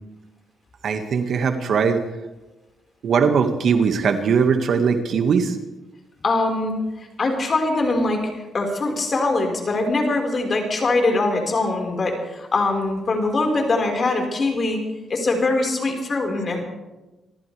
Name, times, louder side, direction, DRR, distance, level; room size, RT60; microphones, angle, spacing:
voice 1, 0.8-2.0 3.0-5.6, right 6 dB, 65° right, 6 dB, 1.9 m, -20 dB
voice 2, 6.2-14.8 15.1-16.6, left 2 dB, 40° left, 2 dB, 4.9 m, -22 dB
27.0 x 14.5 x 3.5 m, 1.1 s
cardioid pair, 105°, 0 cm